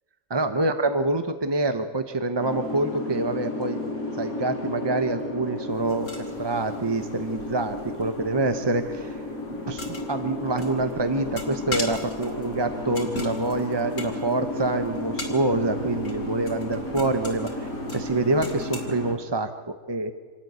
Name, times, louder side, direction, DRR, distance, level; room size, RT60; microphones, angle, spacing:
voice 1, 0.3-3.8 4.1-6.1 6.4-9.2 9.7-20.1, right 2 dB, 25° right, 8 dB, 0.7 m, -26 dB
Boat Water vehicle, 2.4-19.1, left 1 dB, 70° left, 5.7 m, -33 dB
sound 1, 5.7-18.8, left 3 dB, 85° left, 3.6 m, -41 dB
26.5 x 13.0 x 9.4 m, 1.5 s
omnidirectional pair, 1.5 m